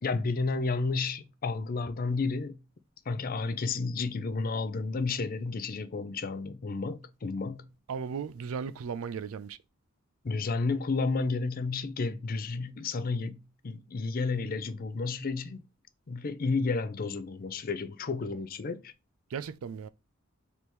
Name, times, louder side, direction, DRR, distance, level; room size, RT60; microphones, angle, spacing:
voice 1, 0.0-2.6 3.1-7.7 10.2-15.6 16.1-18.9, left 4 dB, 45° left, 0.5 m, -31 dB
voice 2, 7.9-9.6 19.3-19.9, right 6 dB, 80° right, 0.4 m, -36 dB
3.4 x 3.0 x 4.2 m
head